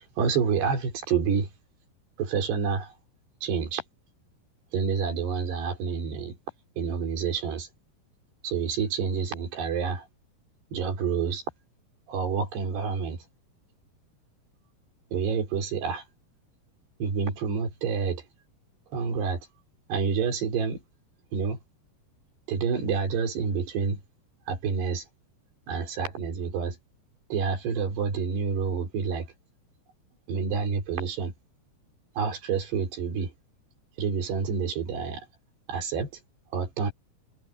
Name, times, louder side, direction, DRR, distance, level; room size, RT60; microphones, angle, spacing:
voice 1, 0.2-1.5 2.2-2.9 3.4-3.8 4.7-6.4 6.8-7.7 8.4-10.1 10.7-11.4 12.1-13.2 15.1-16.0 17.0-18.2 18.9-19.5 19.9-20.8 21.3-21.6 22.5-24.0 24.5-25.0 25.7-26.8 27.3-29.3 30.3-31.3 32.2-33.3 34.0-35.3 35.7-36.1 36.5-36.9, right 6 dB, 85° right, 6.2 m, -28 dB
omnidirectional pair, 4.7 m